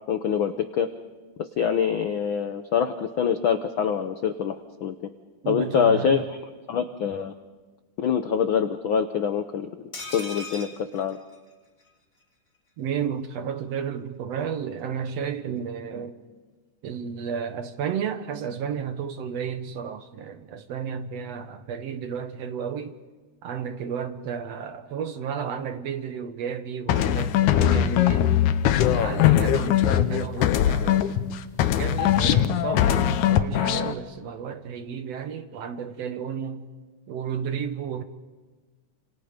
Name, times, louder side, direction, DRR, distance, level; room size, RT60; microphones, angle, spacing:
voice 1, 0.1-0.9 1.4-4.6 4.8-5.1 5.4-6.2 6.7-7.3 8.0-11.2, left 7 dB, 70° left, 1.2 m, -25 dB
voice 2, 5.4-6.3 12.8-16.2 16.8-23.0 23.4-28.4 28.8-31.1 31.7-36.7 37.1-38.0, right 7 dB, 65° right, 2.1 m, -32 dB
sound 1, 9.9-11.9 12.2-12.3 12.5-12.7, left 2 dB, 15° left, 2.8 m, -39 dB
sound 2, 26.9-31.3 31.6-33.9, left 11 dB, 90° left, 2.4 m, -21 dB
29.0 x 27.0 x 5.2 m
omnidirectional pair, 3.4 m